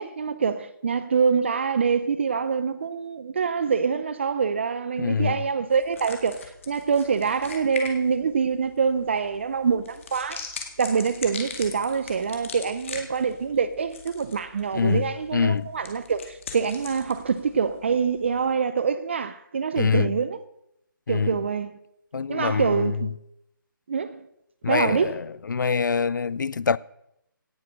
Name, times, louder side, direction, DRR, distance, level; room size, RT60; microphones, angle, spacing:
voice 1, 0.0-10.5 10.8-20.4 21.1-21.8 22.3-23.1 23.9-24.2 24.7-25.1, right 6 dB, 35° right, 0.6 m, -25 dB
voice 2, 5.0-5.4 14.7-15.7 19.8-20.1 21.1-21.4 22.1-23.0 24.6-26.8, left 5 dB, 60° left, 0.5 m, -25 dB
sound 1, 5.7-18.5, left 5 dB, 35° left, 2.0 m, -41 dB
17.5 x 6.7 x 6.3 m
hypercardioid pair, 170°, 11 cm